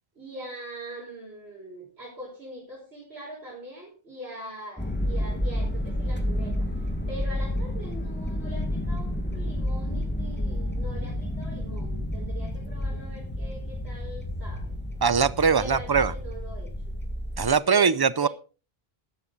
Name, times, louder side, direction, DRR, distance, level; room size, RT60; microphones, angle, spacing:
voice 1, 0.2-14.7 15.4-17.0 17.7-18.3, right 1 dB, 85° right, -4 dB, 5.6 m, -42 dB
sound 1, 4.8-17.5, left 1 dB, 10° left, 1.8 m, -30 dB
voice 2, 15.0-16.1 17.4-18.3, right 6 dB, 30° right, 17 dB, 0.5 m, -21 dB
12.5 x 12.0 x 4.0 m, 0.35 s
omnidirectional pair, 1.1 m